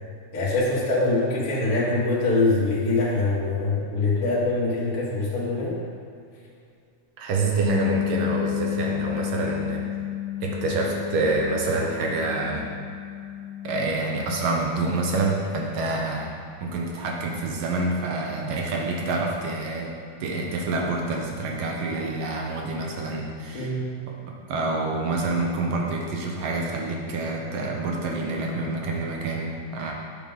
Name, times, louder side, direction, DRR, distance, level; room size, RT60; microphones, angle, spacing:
voice 1, 0.3-5.8 23.5-23.9, left 2 dB, 50° left, -8 dB, 2.1 m, -24 dB
voice 2, 7.2-9.8 10.4-12.7 13.6-16.3 16.6-19.9 20.2-23.7 24.1-29.9, right 3 dB, 75° right, -1 dB, 1.2 m, -27 dB
Bass guitar, 7.6-13.9, left 13 dB, 85° left, 2.0 m, -31 dB
10.0 x 6.9 x 3.7 m, 2.4 s
omnidirectional pair, 3.5 m